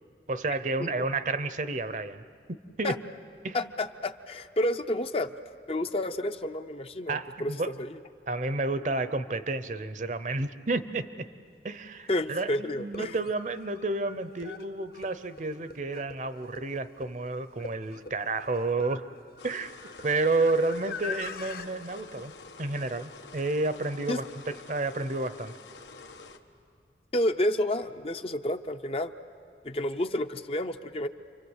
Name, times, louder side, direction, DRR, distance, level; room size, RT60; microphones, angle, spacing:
voice 1, 0.3-2.2 2.8-3.0 3.4-3.6 7.1-7.7 8.3-11.3 11.6-19.1 19.4-19.7 20.0-22.3 22.6-25.5, right 3 dB, 45° right, 13 dB, 0.7 m, -30 dB
voice 2, 3.5-5.3 5.7-7.5 7.8-8.0 12.1-13.2 24.1-24.2 27.1-29.1 29.6-31.1, left 1 dB, 30° left, 8 dB, 0.6 m, -30 dB
sound 1, 11.7-11.8 12.8-21.7, left 4 dB, 55° left, 1.0 m, -44 dB
sound 2, 19.4-26.4, left 4 dB, 90° left, 1.4 m, -48 dB
29.5 x 24.5 x 8.1 m, 2.4 s
head